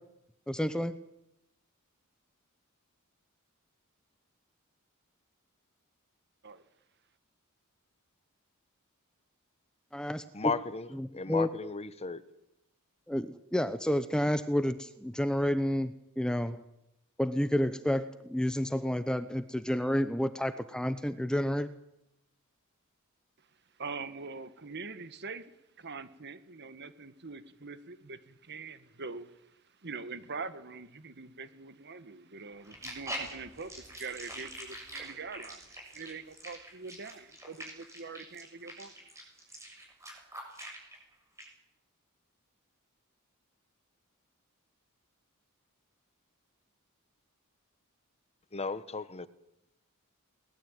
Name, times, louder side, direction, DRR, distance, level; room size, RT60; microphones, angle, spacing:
voice 1, 0.5-0.9 9.9-10.5 11.3-11.5 13.1-16.6 17.2-21.7, left 1 dB, 5° left, 11 dB, 0.8 m, -30 dB
voice 2, 10.3-12.2 48.5-49.3, left 4 dB, 30° left, 14 dB, 1.1 m, -35 dB
voice 3, 23.8-25.5 25.8-29.5 29.8-39.0, right 4 dB, 50° right, 13 dB, 1.6 m, -43 dB
sound 1, 32.6-41.0 41.4-41.5, right 1 dB, 15° right, 7.1 m, -44 dB
22.5 x 20.0 x 9.0 m, 0.84 s
head